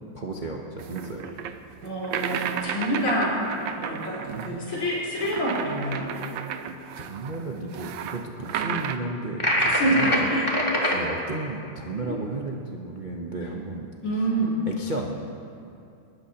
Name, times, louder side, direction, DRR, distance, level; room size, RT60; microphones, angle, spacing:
voice 1, 0.1-1.2 4.3-4.6 7.0-10.3 10.9-13.9 14.7-15.3, right 2 dB, 45° right, -1 dB, 0.6 m, -33 dB
sound 1, 0.8-9.0, right 8 dB, 70° right, 1.3 m, -34 dB
voice 2, 1.8-3.3 3.7-6.1 9.6-10.4 10.8-10.9 12.0-12.2 14.0-14.5, right 1 dB, 90° left, -7 dB, 5.0 m, -27 dB
sound 2, 9.4-11.0, equal, 15° left, 2.0 m, -23 dB
29.0 x 13.0 x 2.9 m, 2.6 s
omnidirectional pair, 2.4 m